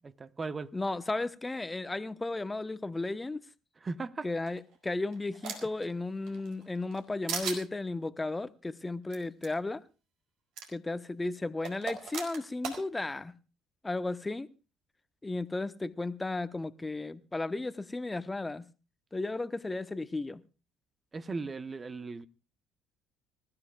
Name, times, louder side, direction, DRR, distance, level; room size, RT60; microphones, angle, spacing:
voice 1, 0.2-0.7 3.8-4.3 21.1-22.3, right 4 dB, 30° right, 0.9 m, -37 dB
voice 2, 0.7-3.4 4.2-9.8 10.7-13.3 13.8-14.5 15.2-18.6 19.1-20.4, left 2 dB, 15° left, 1.0 m, -34 dB
sound 1, 4.5-5.8 6.3-7.0 7.3-7.6 9.1-9.2 9.4-9.5 10.6-10.7 11.6-12.8, right 6 dB, 65° right, 4.4 m, -37 dB
25.0 x 15.0 x 2.4 m
hypercardioid pair, 55°, 0 cm